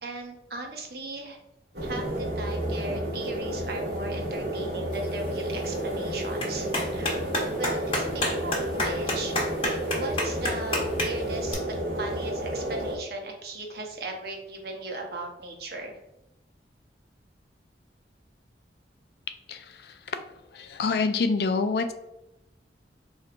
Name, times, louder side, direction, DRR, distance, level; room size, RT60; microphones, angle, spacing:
voice 1, 0.0-1.4 1.8-7.2 7.6-9.4 9.8-16.0, right 2 dB, 60° right, 2 dB, 0.8 m, -37 dB
sound 1, 1.7-13.0, right 1 dB, 75° right, 1.3 m, -31 dB
Clapping, 4.9-11.5, left 1 dB, 30° left, 0.9 m, -32 dB
voice 2, 19.5-19.9 20.5-21.9, left 4 dB, 60° left, 9 dB, 0.4 m, -26 dB
4.4 x 3.2 x 2.4 m, 0.87 s
head